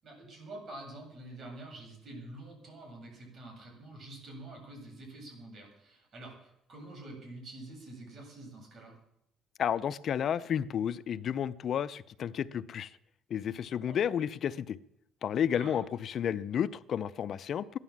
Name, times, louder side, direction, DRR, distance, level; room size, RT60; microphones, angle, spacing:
voice 1, 0.0-8.9 13.9-14.0 15.5-15.8, right 2 dB, 45° right, 1 dB, 7.6 m, -47 dB
voice 2, 9.6-13.0 13.3-14.8 15.2-17.8, left 9 dB, 55° left, 16 dB, 0.5 m, -32 dB
16.0 x 11.0 x 7.3 m, 0.78 s
cardioid pair, 100°, 0 cm